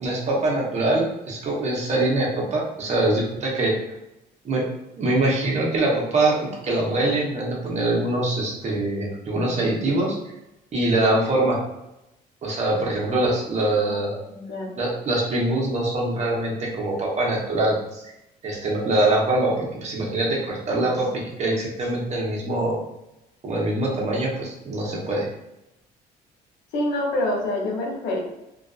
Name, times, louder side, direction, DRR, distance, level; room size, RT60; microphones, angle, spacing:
voice 1, 0.0-3.7 4.4-4.6 5.0-10.2 10.7-11.6 12.4-14.2 14.8-18.1 18.4-22.8 23.4-25.3, right 2 dB, 40° right, -2 dB, 0.8 m, -23 dB
voice 2, 14.3-14.7 26.7-28.2, left 1 dB, 80° left, -1 dB, 0.7 m, -26 dB
2.5 x 2.3 x 2.3 m, 0.88 s
cardioid pair, 110°, 17 cm